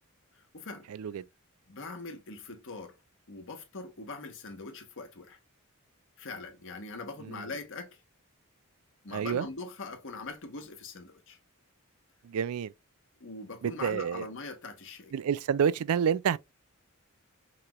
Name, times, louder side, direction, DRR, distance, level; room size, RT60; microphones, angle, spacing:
voice 1, 0.3-0.9 1.7-3.0 3.3-5.4 6.2-8.0 9.0-11.4 13.2-15.1, left 3 dB, 60° left, 1.1 m, -42 dB
voice 2, 9.1-9.5 12.2-12.7 13.8-14.3 15.1-16.4, right 7 dB, 70° right, 0.3 m, -28 dB
5.9 x 3.0 x 2.3 m
head